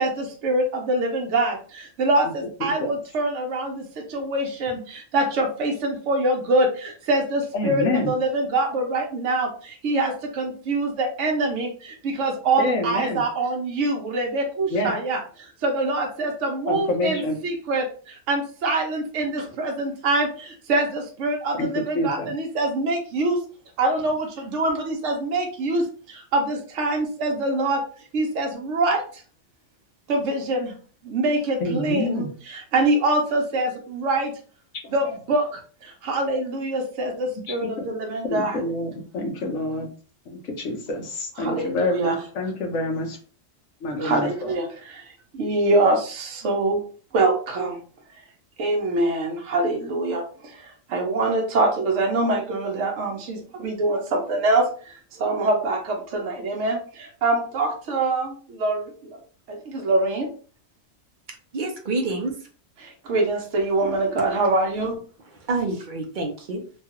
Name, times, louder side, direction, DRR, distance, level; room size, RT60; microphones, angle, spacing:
voice 1, 0.0-3.8 4.1-9.5 9.8-15.2 15.6-17.8 18.3-23.4 23.8-25.8 26.3-27.8 28.1-29.0 30.1-30.7 31.1-34.3 34.9-35.5 36.0-38.6 41.4-42.1 44.0-45.0 45.3-46.8 47.1-47.8 48.6-50.2 50.9-54.7 55.2-58.9 59.5-60.3 63.1-64.9, right 2 dB, 70° right, 2 dB, 1.0 m, -24 dB
voice 2, 2.6-2.9 7.5-8.1 12.6-13.2 14.7-14.9 16.7-17.4 21.6-21.7 21.9-22.3 31.6-32.3 35.0-35.1 37.6-37.9 38.3-39.9 40.3-43.2 43.8-44.5, left 2 dB, 75° left, 3 dB, 1.1 m, -27 dB
voice 3, 61.5-62.5 65.2-66.6, right 3 dB, 50° right, 2 dB, 0.7 m, -28 dB
3.1 x 2.3 x 2.8 m, 0.41 s
omnidirectional pair, 1.3 m